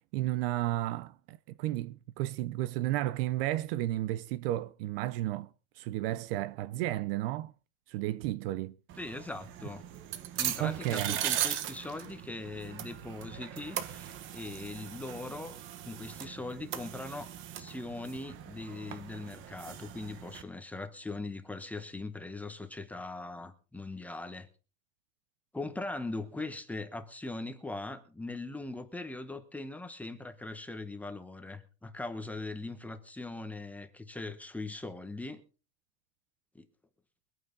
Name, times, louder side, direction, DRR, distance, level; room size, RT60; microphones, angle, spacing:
voice 1, 0.1-5.5 5.8-7.5 7.9-8.7 10.6-11.2, right 15 dB, 50° right, 0.6 m, -33 dB
sound 1, 8.9-20.4, right 11 dB, 35° right, 1.1 m, -39 dB
voice 2, 9.0-9.8 10.4-15.6 15.8-17.3 17.6-24.5 25.5-35.4 36.5-36.6, left 2 dB, 5° left, 0.9 m, -40 dB
23.0 x 9.1 x 3.9 m
supercardioid pair, 170°, 37 cm